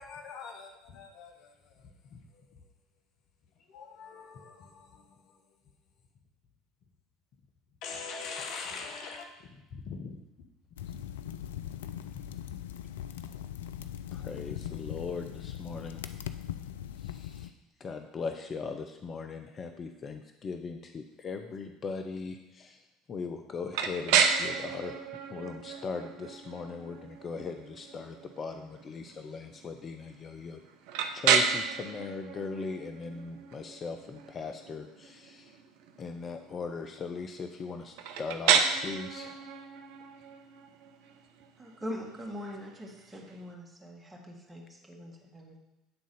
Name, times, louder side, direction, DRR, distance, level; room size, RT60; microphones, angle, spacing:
voice 1, 0.0-1.5 2.1-2.4 3.7-5.4 7.8-10.2 10.8-11.0 12.1-12.2 13.2-13.4 14.9-15.0, left 4 dB, 60° left, 4 dB, 1.0 m, -43 dB
sound 1, 10.8-17.5, left 10 dB, 80° left, 0.3 m, -40 dB
voice 2, 14.1-16.0 17.0-17.5 17.8-22.8 23.1-30.6 31.1-35.5 36.0-39.4, left 4 dB, 35° left, 6 dB, 0.6 m, -39 dB
sound 2, 23.7-43.5, right 7 dB, 65° right, 0.6 m, -32 dB
voice 3, 41.6-45.6, equal, 10° right, -2 dB, 2.0 m, -42 dB
8.8 x 3.7 x 5.4 m, 0.98 s
hypercardioid pair, 65°, 0 cm